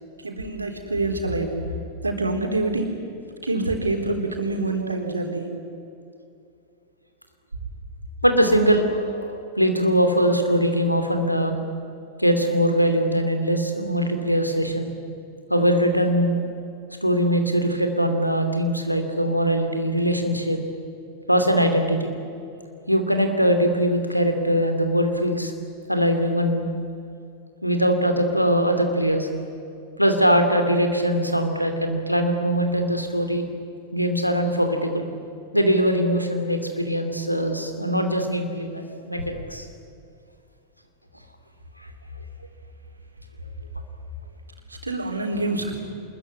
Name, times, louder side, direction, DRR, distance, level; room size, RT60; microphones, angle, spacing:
voice 1, 0.1-1.8 2.0-2.9 3.4-5.5 44.7-45.7, right 2 dB, 80° right, 3 dB, 3.8 m, -26 dB
voice 2, 8.2-11.5 12.2-14.9 15.5-16.4 17.0-20.6 21.3-22.1 22.9-25.5 25.9-26.7 27.6-29.3 30.0-33.5 33.9-35.1 35.5-39.7, equal, 90° left, 6 dB, 2.9 m, -21 dB
24.5 x 21.5 x 9.9 m, 2.6 s
figure-of-eight pair, 90°, 0 cm